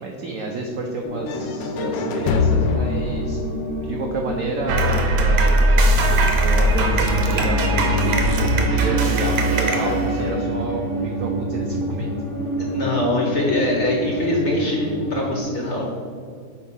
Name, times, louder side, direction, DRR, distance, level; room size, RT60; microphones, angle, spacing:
voice 1, 0.0-3.4 3.9-5.7 6.0-12.1, right 2 dB, 85° right, 1 dB, 0.7 m, -30 dB
sound 1, 1.0-15.4, equal, 10° left, 0.9 m, -28 dB
sound 2, 1.3-5.2, left 4 dB, 75° left, 1.1 m, -25 dB
sound 3, 4.7-10.6, right 1 dB, 65° right, 1.3 m, -19 dB
voice 2, 12.6-16.0, left 1 dB, 55° left, -2 dB, 0.8 m, -23 dB
4.6 x 4.5 x 5.5 m, 2.2 s
omnidirectional pair, 2.2 m